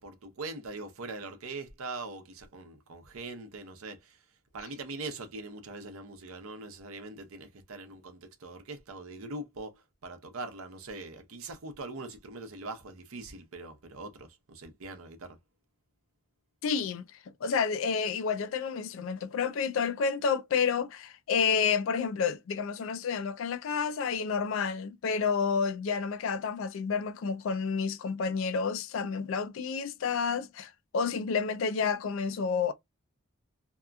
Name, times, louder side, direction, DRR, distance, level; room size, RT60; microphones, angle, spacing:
voice 1, 0.0-4.2 4.5-15.4, right 3 dB, 75° right, 0.7 m, -42 dB
voice 2, 16.6-17.0 17.4-32.7, left 6 dB, 65° left, 0.3 m, -30 dB
2.8 x 2.4 x 2.2 m
head